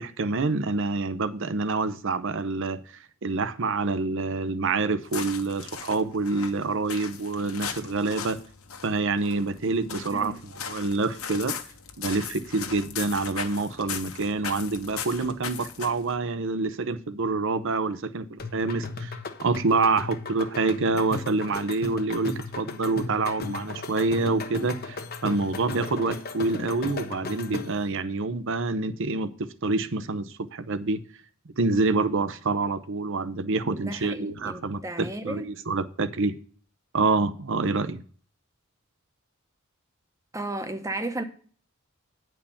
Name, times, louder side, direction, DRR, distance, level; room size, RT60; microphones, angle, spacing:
voice 1, 0.0-8.4 8.8-11.6 12.0-31.0 31.6-36.4 36.9-38.0, right 3 dB, 65° right, 0.8 m, -27 dB
sound 1, 5.0-16.2, left 7 dB, 90° left, 1.3 m, -38 dB
sound 2, 18.4-27.9, left 3 dB, 45° left, 1.1 m, -36 dB
voice 2, 33.6-35.5 40.3-41.2, right 2 dB, 15° right, 1.0 m, -34 dB
10.0 x 4.6 x 7.1 m
head